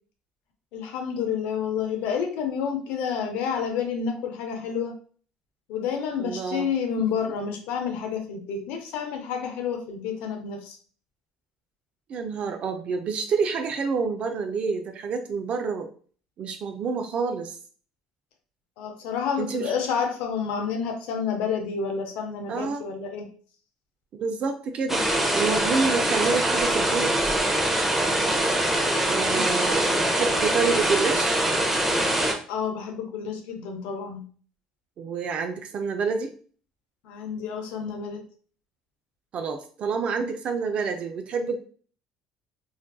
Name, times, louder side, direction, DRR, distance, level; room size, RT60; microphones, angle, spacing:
voice 1, 0.7-4.9 5.7-10.8 18.8-23.3 29.3-29.5 32.5-34.2 37.0-38.2, left 6 dB, 75° left, 4 dB, 0.6 m, -29 dB
voice 2, 6.2-6.7 12.1-15.9 16.4-17.6 19.4-19.7 22.5-22.9 24.1-25.0 25.3-27.2 29.1-31.4 35.0-36.3 39.3-41.6, right 5 dB, 50° right, 6 dB, 0.4 m, -28 dB
sound 1, 24.9-32.3, right 1 dB, 10° right, 0.6 m, -23 dB
2.5 x 2.3 x 2.2 m, 0.43 s
supercardioid pair, 80°, 3 cm